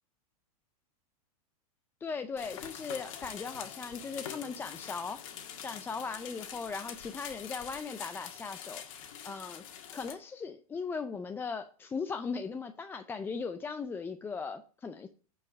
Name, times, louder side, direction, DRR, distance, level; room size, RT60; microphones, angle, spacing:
voice 1, 2.0-5.2 5.6-9.6 9.9-15.1, left 5 dB, 10° left, 8 dB, 0.4 m, -38 dB
sound 1, 2.4-10.1, left 9 dB, 60° left, 1.7 m, -45 dB
9.4 x 4.7 x 5.0 m, 0.41 s
hypercardioid pair, 130°, 19 cm